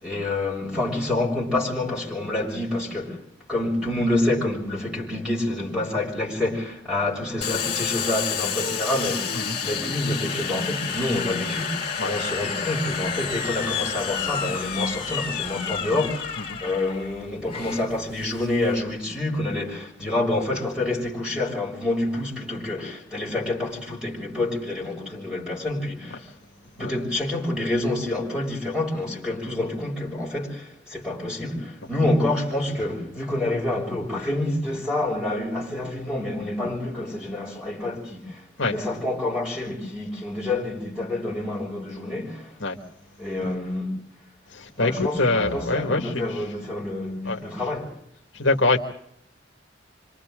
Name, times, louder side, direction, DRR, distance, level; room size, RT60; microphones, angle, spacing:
voice 1, 0.0-3.2 3.5-26.3 26.8-42.5 43.2-43.9 44.8-47.9, left 2 dB, 5° right, 6.7 m, -27 dB
Domestic sounds home sounds, 7.4-18.8, left 7 dB, 25° left, 3.6 m, -30 dB
voice 2, 44.5-46.5 47.2-47.7 48.3-48.8, left 2 dB, 70° left, 2.0 m, -25 dB
28.0 x 26.0 x 3.8 m
head